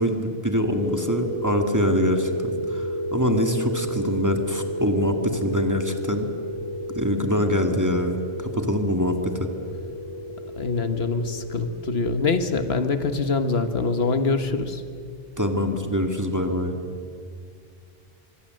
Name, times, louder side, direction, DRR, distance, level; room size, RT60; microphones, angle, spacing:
voice 1, 0.0-6.3 6.9-9.5 15.4-16.8, equal, 15° right, 5 dB, 2.0 m, -24 dB
sound 1, 0.8-14.1, equal, 65° right, 8.1 m, -32 dB
voice 2, 10.6-14.8, left 4 dB, 75° left, 9 dB, 1.6 m, -24 dB
24.5 x 24.0 x 7.7 m, 2.3 s
omnidirectional pair, 1.0 m